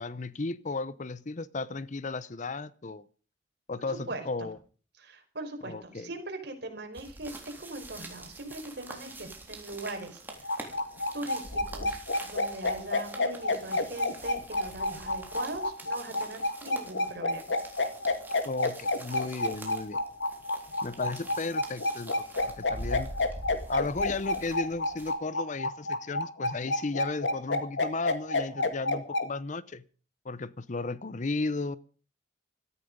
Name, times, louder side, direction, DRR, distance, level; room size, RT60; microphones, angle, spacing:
voice 1, 0.0-3.0 3.7-4.6 5.6-6.1 18.4-20.0 20.8-22.1 22.4-23.1 23.7-29.8 30.2-31.8, left 3 dB, 40° left, 18 dB, 0.7 m, -34 dB
voice 2, 4.1-4.5 5.0-10.6 11.1-12.0 12.2-17.4, right 2 dB, 60° right, 4 dB, 4.7 m, -40 dB
sound 1, 6.9-25.1, right 1 dB, 10° right, 3.5 m, -45 dB
sound 2, 10.3-29.3, left 2 dB, 80° left, 2.1 m, -29 dB
17.5 x 14.5 x 5.3 m, 0.40 s
head